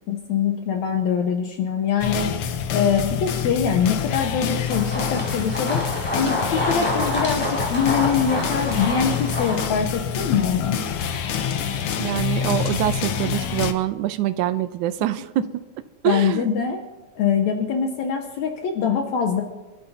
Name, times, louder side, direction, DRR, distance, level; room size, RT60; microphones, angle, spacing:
voice 1, 0.1-2.3 2.7-5.8 6.1-10.8 16.0-16.8 17.2-19.4, left 7 dB, 70° left, 3 dB, 2.2 m, -23 dB
sound 1, 2.0-13.7, left 8 dB, 85° left, 1.2 m, -27 dB
sound 2, 4.7-9.7, left 1 dB, 5° left, 4.4 m, -27 dB
voice 2, 12.0-15.5 16.0-16.5, right 14 dB, 80° right, 12 dB, 2.0 m, -24 dB
26.5 x 13.0 x 2.8 m, 1.2 s
omnidirectional pair, 3.6 m